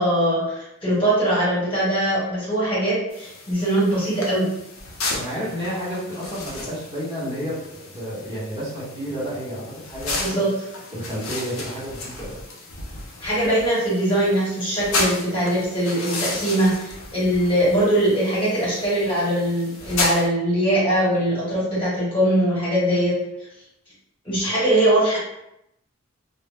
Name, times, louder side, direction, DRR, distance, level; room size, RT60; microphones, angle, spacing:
voice 1, 0.0-4.5 10.2-10.5 13.2-23.2 24.2-25.2, right 1 dB, 25° left, -9 dB, 1.2 m, -21 dB
sound 1, 3.1-20.3, left 3 dB, 70° left, 0.6 m, -33 dB
voice 2, 5.2-10.4 10.9-12.4, equal, 20° right, -10 dB, 0.9 m, -31 dB
2.1 x 2.1 x 3.3 m, 0.83 s
head